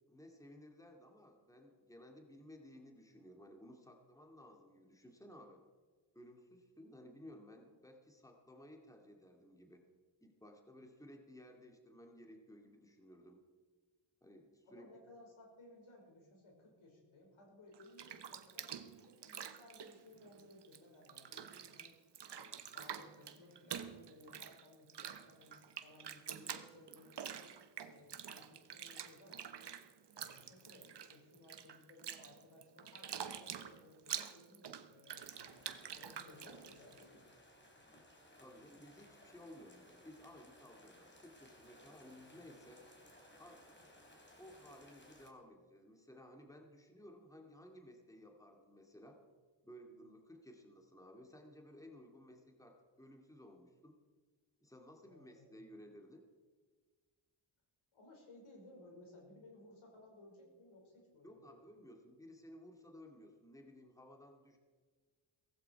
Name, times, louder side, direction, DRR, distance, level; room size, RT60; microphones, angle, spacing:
voice 1, 0.1-5.6 6.1-9.9 10.2-13.4 14.2-14.9 38.4-42.8 43.4-43.6 44.4-49.2 49.6-54.0 54.6-56.3 61.2-64.6, left 1 dB, 5° left, 2 dB, 2.4 m, -57 dB
voice 2, 14.7-18.7 19.0-22.0 22.3-27.5 27.8-29.7 30.1-35.6 35.9-37.3 55.1-55.7 57.9-61.6, left 2 dB, 75° left, -1 dB, 5.8 m, -60 dB
Bathtub (filling or washing), 17.7-20.8 21.1-37.0, right 8 dB, 55° right, 1.2 m, -47 dB
sound 1, 35.2-45.3, left 1 dB, 20° left, 3.7 m, -62 dB
17.0 x 15.0 x 4.8 m, 1.5 s
cardioid pair, 70°, 49 cm